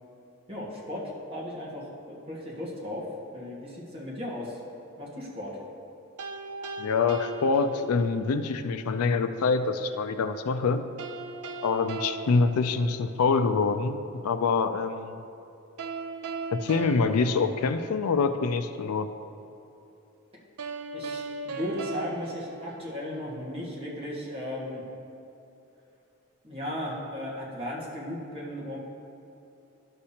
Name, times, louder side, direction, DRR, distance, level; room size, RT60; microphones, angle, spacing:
voice 1, 0.5-1.0 1.3-3.0 3.3-4.6 5.0-5.5 20.9-24.8 26.4-28.8, left 1 dB, 25° right, -6 dB, 1.6 m, -36 dB
sound 1, 6.2-8.3 11.0-13.4 15.8-18.3 20.6-23.4, right 3 dB, 90° right, 0.5 m, -38 dB
voice 2, 6.8-10.8 11.6-14.0 14.2-15.2 16.5-19.1, left 4 dB, 80° left, 10 dB, 0.4 m, -25 dB
11.5 x 6.6 x 2.8 m, 2.9 s
head